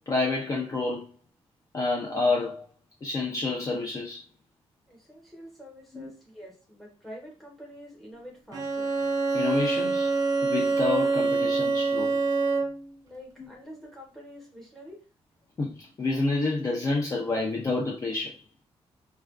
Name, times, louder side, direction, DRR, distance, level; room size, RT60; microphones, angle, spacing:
voice 1, 0.1-1.1 1.7-2.6 3.0-4.2 5.9-6.1 9.3-10.1 10.4-12.1 13.4-13.5 15.6-18.4, left 3 dB, 30° left, 0.4 m, -28 dB
voice 2, 4.9-8.9 13.0-15.0, equal, ahead, 0.9 m, -46 dB
Bowed string instrument, 8.5-12.9, right 3 dB, 35° right, 0.4 m, -26 dB
2.4 x 2.2 x 2.3 m
wide cardioid pair, 140°, 11 cm